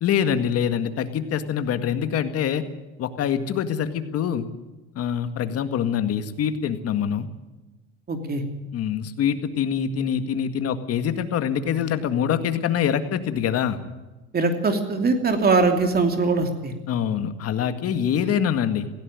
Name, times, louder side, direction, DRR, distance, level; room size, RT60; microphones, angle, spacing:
voice 1, 0.0-2.6 3.0-4.5 4.9-7.3 8.7-13.8 16.9-18.9, left 8 dB, 50° left, 9 dB, 1.9 m, -24 dB
voice 2, 8.1-8.4 14.3-16.7, right 3 dB, 30° right, 5 dB, 2.9 m, -21 dB
17.0 x 16.0 x 9.6 m, 1.1 s
supercardioid pair, 110°, 31 cm